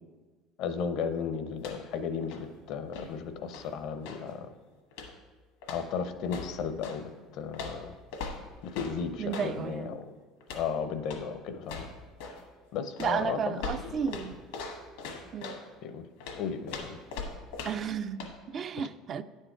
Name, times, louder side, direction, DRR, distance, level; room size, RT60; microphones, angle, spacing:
voice 1, 0.6-4.5 5.7-7.9 8.6-10.1 10.5-11.9 12.7-14.1 15.8-16.0 16.3-17.0, left 6 dB, 65° left, 0.6 m, -35 dB
sound 1, 1.5-4.3 4.9-5.3 5.6-7.0 7.5-9.6 10.4-10.7 11.0-11.3 11.6-12.5 13.0-15.7 16.2-17.9 18.2-18.4, left 4 dB, 85° left, 1.2 m, -41 dB
voice 2, 9.2-10.0 13.0-14.4 15.3-15.6 17.6-19.2, right 7 dB, 45° right, 0.3 m, -33 dB
9.7 x 4.6 x 4.5 m
supercardioid pair, 100°, 0 cm